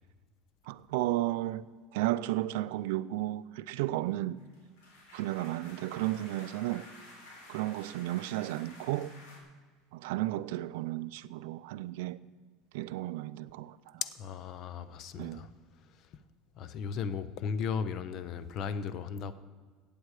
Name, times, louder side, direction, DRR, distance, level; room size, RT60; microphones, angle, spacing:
voice 1, 0.7-1.6 1.9-4.4 5.1-6.9 7.5-9.1 9.9-12.2 12.7-13.8 15.2-15.4, right 16 dB, 70° right, 0.4 m, -33 dB
sound 1, 4.4-9.4, left 2 dB, 85° left, 3.4 m, -52 dB
voice 2, 14.0-15.5 16.6-19.3, left 6 dB, 35° left, 0.5 m, -36 dB
14.5 x 8.6 x 4.8 m
cardioid pair, 175°, 0 cm